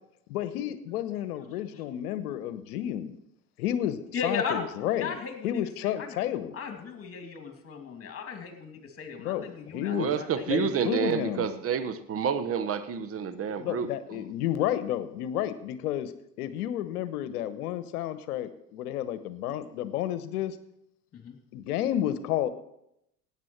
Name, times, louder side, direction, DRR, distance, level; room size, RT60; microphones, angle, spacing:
voice 1, 0.3-3.2 3.6-5.2 5.4-6.5 9.2-10.1 10.5-11.5 13.6-16.1 16.4-20.6 21.5-22.5, left 11 dB, 65° left, 1.2 m, -31 dB
voice 2, 4.1-4.6 5.0-6.2 6.5-11.2 21.1-21.4, left 5 dB, 30° left, 2.8 m, -37 dB
voice 3, 9.9-14.2, right 7 dB, 30° right, 1.1 m, -29 dB
17.0 x 9.2 x 4.6 m
figure-of-eight pair, 75°, 48 cm